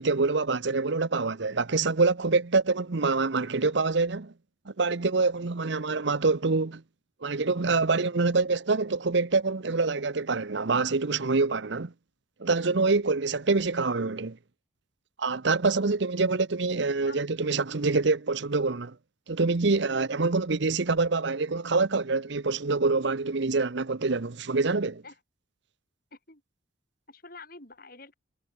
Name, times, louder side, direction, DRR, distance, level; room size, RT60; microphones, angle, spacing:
voice 1, 0.0-4.3 4.7-6.8 7.2-11.9 12.4-14.4 15.2-18.9 19.3-25.0, right 3 dB, 60° right, 0.8 m, -26 dB
voice 2, 27.1-28.1, left 3 dB, 45° left, 8.0 m, -47 dB
head